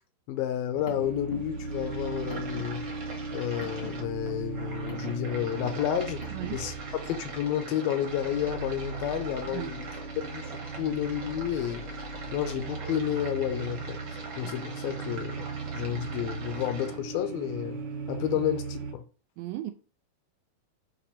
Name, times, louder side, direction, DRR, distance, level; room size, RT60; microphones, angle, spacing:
voice 1, 0.3-2.8 3.3-6.2 6.5-6.7 7.0-9.9 10.2-11.8 12.3-14.0 14.4-15.5 15.7-17.8 18.1-19.0, left 10 dB, 80° left, 2.3 m, -31 dB
Car, 0.5-6.7, left 1 dB, 40° left, 0.8 m, -47 dB
sound 1, 0.8-18.9, right 4 dB, 65° right, 2.0 m, -38 dB
sound 2, 1.4-17.0, right 3 dB, 50° right, 1.3 m, -43 dB
voice 2, 6.3-6.6 9.5-9.7 14.4-14.5 19.4-19.7, right 15 dB, 80° right, 2.1 m, -36 dB
6.7 x 3.0 x 5.0 m
omnidirectional pair, 4.3 m